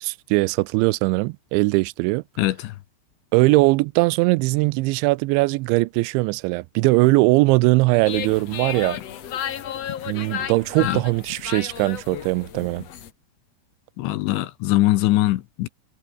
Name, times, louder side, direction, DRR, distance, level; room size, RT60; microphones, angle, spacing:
voice 1, 0.0-2.2 3.3-9.0 10.1-12.9, right 23 dB, 85° right, 2.9 m, -20 dB
voice 2, 2.4-2.8 10.8-11.0 14.0-15.7, left 16 dB, 80° left, 3.4 m, -22 dB
sound 1, 8.0-13.1, left 9 dB, 65° left, 1.6 m, -33 dB
omnidirectional pair, 5.3 m